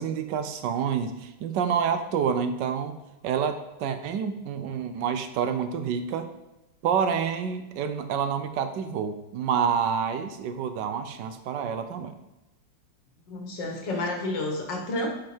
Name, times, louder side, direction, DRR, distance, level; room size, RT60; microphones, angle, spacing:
voice 1, 0.0-3.0 3.2-6.3 6.8-12.1, right 7 dB, 75° right, 9 dB, 1.2 m, -28 dB
voice 2, 13.3-15.1, left 2 dB, 70° left, 1 dB, 2.0 m, -30 dB
7.5 x 5.2 x 4.4 m, 0.99 s
omnidirectional pair, 2.0 m